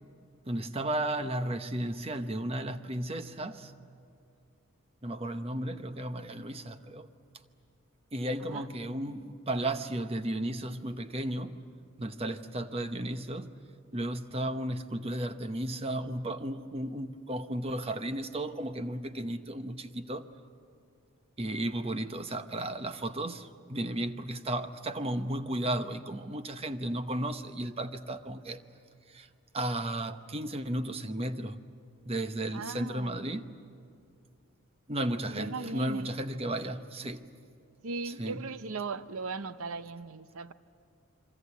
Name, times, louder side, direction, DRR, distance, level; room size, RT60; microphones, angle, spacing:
voice 1, 0.5-3.7 5.0-7.1 8.1-11.6 12.0-13.6 13.9-20.3 21.4-28.6 29.1-29.3 29.5-31.6 32.1-33.5 34.9-37.3 38.0-38.5, right 1 dB, 25° right, 0.9 m, -34 dB
voice 2, 32.5-33.3 35.3-36.1 37.8-40.5, right 3 dB, 80° right, 0.7 m, -38 dB
26.5 x 24.5 x 8.4 m
head